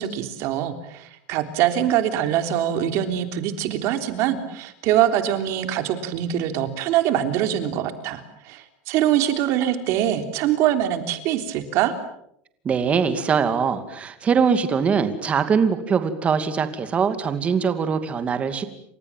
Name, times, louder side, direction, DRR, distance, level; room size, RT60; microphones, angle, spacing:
voice 1, 0.0-12.0, right 11 dB, 45° right, 8 dB, 3.5 m, -23 dB
voice 2, 12.6-18.6, right 6 dB, 20° right, 10 dB, 2.4 m, -22 dB
29.0 x 26.5 x 7.4 m, 0.74 s
supercardioid pair, 165°, 6 cm